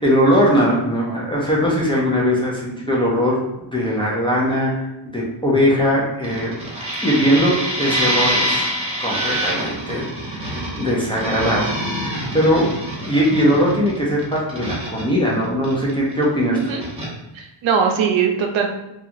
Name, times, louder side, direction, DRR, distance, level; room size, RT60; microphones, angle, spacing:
voice 1, 0.0-6.5 7.0-8.6 9.0-12.7 13.1-16.6, equal, 10° left, -5 dB, 0.4 m, -20 dB
sound 1, 6.2-16.2 16.5-17.1, equal, 15° right, 0.7 m, -25 dB
voice 2, 16.5-16.8 17.3-18.7, right 6 dB, 80° right, 3 dB, 0.6 m, -20 dB
2.8 x 2.3 x 2.5 m, 0.93 s
wide cardioid pair, 165°, 47 cm